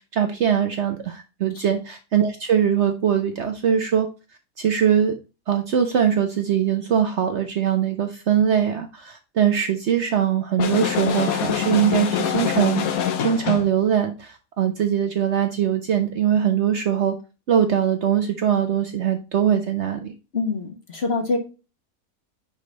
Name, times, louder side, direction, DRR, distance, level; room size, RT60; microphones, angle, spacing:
voice 1, 0.1-4.1 4.6-5.1 5.5-12.8 13.2-17.1 17.5-20.1, right 9 dB, 55° right, 6 dB, 0.9 m, -21 dB
sound 1, 10.6-13.7, left 9 dB, 70° left, 1.3 m, -24 dB
voice 2, 20.3-21.4, left 3 dB, 45° left, 3 dB, 1.5 m, -25 dB
5.3 x 5.1 x 3.8 m, 0.31 s
omnidirectional pair, 1.6 m